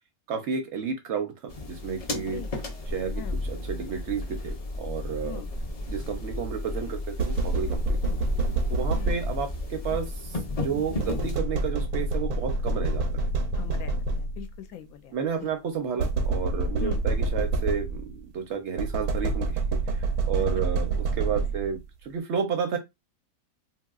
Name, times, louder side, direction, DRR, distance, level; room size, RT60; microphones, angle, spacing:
voice 1, 0.3-2.4 2.9-5.4 5.9-8.0 8.7-13.2 15.1-19.8 20.3-22.8, right 6 dB, 65° right, 0.7 m, -31 dB
sound 1, 1.5-11.4, left 2 dB, 50° left, 0.4 m, -33 dB
voice 2, 2.1-2.5 3.1-3.4 5.2-5.5 8.0-8.2 8.9-9.2 13.5-15.5 15.9-16.0 16.8-17.0 20.4-20.6, left 8 dB, 75° left, 1.0 m, -41 dB
sound 2, 7.2-9.6 11.0-14.6 16.0-18.2 18.8-21.8, right 3 dB, 90° right, 1.2 m, -27 dB
2.9 x 2.7 x 2.3 m
omnidirectional pair, 1.6 m